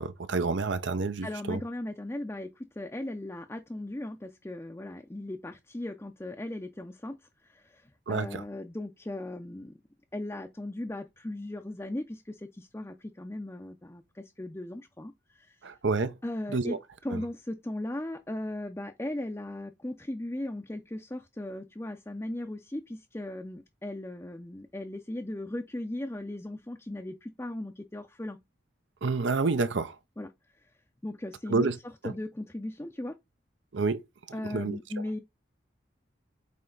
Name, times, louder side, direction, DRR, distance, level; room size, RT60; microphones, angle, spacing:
voice 1, 0.0-1.6 8.1-8.4 15.6-16.1 16.5-16.8 17.1-17.2 29.0-29.9 31.5-31.7 32.0-32.1 33.7-34.0 34.5-34.8, right 4 dB, 75° right, 0.7 m, -28 dB
voice 2, 1.2-9.7 10.1-15.6 16.2-28.4 30.2-30.3 31.0-33.2 34.3-35.2, left 1 dB, 15° left, 0.5 m, -37 dB
8.6 x 3.3 x 3.9 m
head